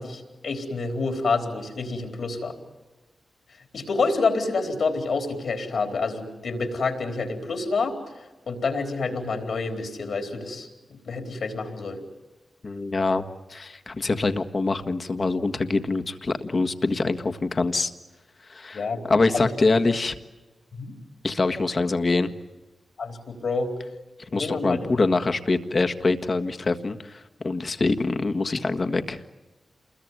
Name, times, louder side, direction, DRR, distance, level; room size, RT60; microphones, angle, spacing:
voice 1, 0.0-2.6 3.7-8.0 8.5-10.7 11.0-12.0 18.7-19.0 19.3-19.5 20.7-21.0 23.0-23.7 24.3-24.8, left 4 dB, 75° left, 5 dB, 4.0 m, -28 dB
voice 2, 12.6-13.2 13.5-17.9 18.5-20.2 21.2-22.3 24.3-29.2, left 3 dB, 50° left, 7 dB, 1.6 m, -24 dB
28.0 x 21.5 x 9.6 m, 1.1 s
cardioid pair, 50°, 0 cm